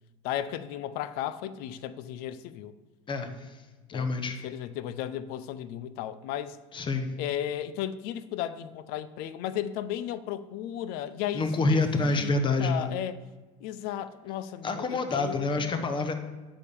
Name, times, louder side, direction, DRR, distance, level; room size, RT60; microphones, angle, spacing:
voice 1, 0.2-2.7 3.9-4.1 4.4-6.6 7.2-12.3 12.6-13.2 13.6-15.7, left 11 dB, 65° left, 0.5 m, -35 dB
voice 2, 3.1-3.6 3.9-4.4 6.7-7.1 11.3-12.9 14.6-16.1, left 3 dB, 30° left, 1.0 m, -27 dB
9.0 x 3.7 x 6.8 m
supercardioid pair, 100°, 17 cm